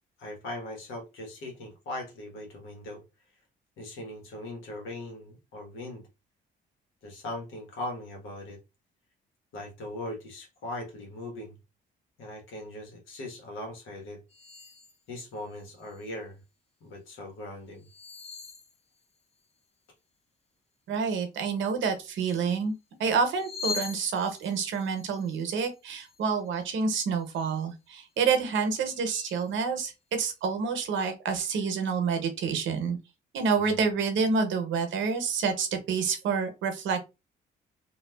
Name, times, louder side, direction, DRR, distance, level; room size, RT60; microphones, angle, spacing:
voice 1, 0.2-3.0 3.8-6.0 7.0-8.6 9.5-11.6 12.2-14.2 15.1-16.4 16.8-17.9 33.6-33.9, left 1 dB, 85° left, 1.2 m, -40 dB
sound 1, 14.3-15.0 15.5-16.1 17.8-19.4 22.0-22.6 23.2-26.7 27.1-27.6 28.2-28.3 28.8-29.5, left 6 dB, 30° left, 0.5 m, -42 dB
voice 2, 20.9-22.7 23.0-33.0 33.3-37.0, right 5 dB, 75° right, 0.8 m, -28 dB
2.9 x 2.3 x 2.2 m
cardioid pair, 90°, 20 cm